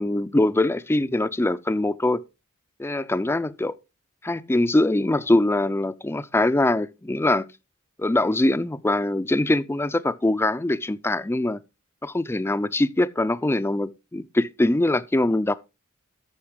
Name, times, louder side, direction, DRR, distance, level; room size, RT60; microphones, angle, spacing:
voice 1, 0.0-2.2 2.8-3.8 4.2-7.5 8.0-11.6 12.0-15.6, left 2 dB, 10° left, 0.4 m, -23 dB
13.0 x 5.8 x 3.6 m
head